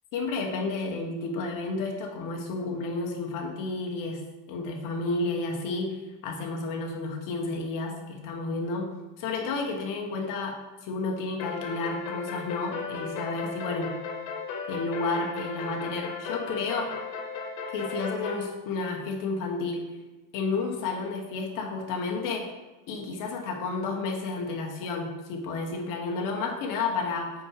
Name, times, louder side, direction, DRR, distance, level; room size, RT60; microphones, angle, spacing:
voice 1, 0.1-8.9 9.2-14.0 14.7-16.9 17.7-19.9 20.3-22.5 22.9-27.3, left 3 dB, 40° left, 1 dB, 1.3 m, -31 dB
sound 1, 11.4-18.5, left 5 dB, 75° left, 1.5 m, -35 dB
6.1 x 5.0 x 4.7 m, 1.1 s
cardioid pair, 170°, 48 cm